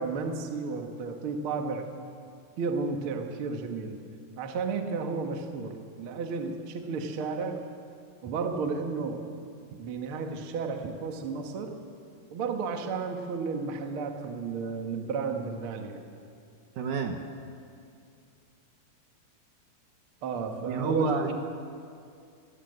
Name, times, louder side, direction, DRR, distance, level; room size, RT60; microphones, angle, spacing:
voice 1, 0.0-1.9 2.6-4.0 4.4-7.6 8.2-9.3 9.8-11.8 12.3-16.0 20.2-21.3, right 4 dB, 50° right, 4 dB, 1.9 m, -32 dB
voice 2, 16.8-17.2 20.6-21.3, right 5 dB, 65° right, 5 dB, 2.5 m, -29 dB
23.0 x 18.5 x 8.0 m, 2.4 s
omnidirectional pair, 4.2 m